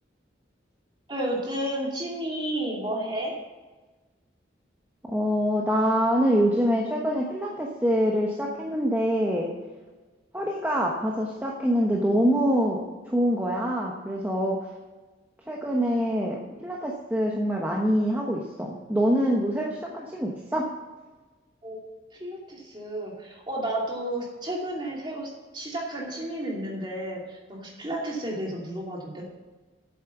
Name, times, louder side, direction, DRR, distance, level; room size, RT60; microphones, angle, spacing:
voice 1, 1.1-3.3 21.6-21.8 22.1-29.2, right 1 dB, 25° right, -2 dB, 2.7 m, -32 dB
voice 2, 5.0-9.5 10.3-14.7 15.5-20.8, equal, 10° right, -2 dB, 1.1 m, -25 dB
8.5 x 8.4 x 7.1 m, 1.3 s
head